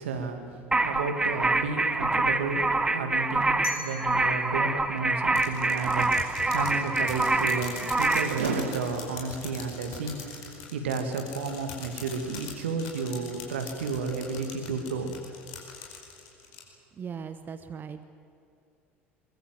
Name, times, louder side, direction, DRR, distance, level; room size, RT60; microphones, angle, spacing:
voice 1, 0.0-15.2, right 4 dB, 70° right, 6 dB, 2.5 m, -32 dB
sound 1, 0.7-8.4, right 2 dB, 10° right, 1.3 m, -26 dB
sound 2, 3.6-6.5, left 4 dB, 70° left, 6.3 m, -43 dB
sound 3, 5.4-16.6, left 6 dB, 55° left, 4.9 m, -42 dB
voice 2, 17.0-18.0, right 6 dB, 30° right, 10 dB, 1.0 m, -38 dB
22.5 x 22.0 x 7.8 m, 2.6 s
figure-of-eight pair, 70°, 7 cm